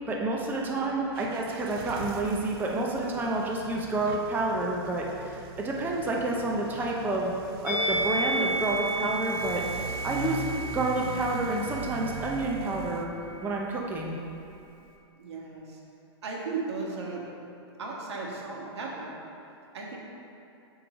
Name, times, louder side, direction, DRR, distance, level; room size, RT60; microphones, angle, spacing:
voice 1, 0.1-7.3 7.6-9.6 10.0-10.4 10.7-13.1 13.4-14.2, right 2 dB, 15° right, -2 dB, 0.7 m, -29 dB
sound 1, 1.1-13.1, right 4 dB, 55° right, 0.5 m, -41 dB
Musical instrument, 7.6-12.9 13.1-13.4, right 1 dB, 55° left, 1.1 m, -32 dB
voice 2, 15.2-15.8 16.2-17.2 17.8-19.2 19.7-20.0, right 4 dB, 80° right, -2 dB, 1.3 m, -36 dB
7.3 x 3.2 x 5.1 m, 2.6 s
hypercardioid pair, 125°, 14 cm